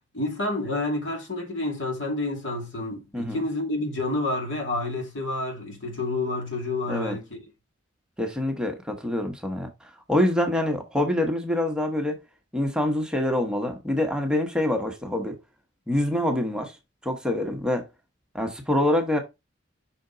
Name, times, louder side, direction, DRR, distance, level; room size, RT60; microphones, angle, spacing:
voice 1, 0.1-7.4, left 2 dB, 80° left, 2.4 m, -29 dB
voice 2, 8.2-12.2 12.5-15.4 15.9-16.7 17.0-17.9 18.3-19.2, left 1 dB, 5° right, 1.0 m, -25 dB
5.6 x 4.3 x 3.9 m
head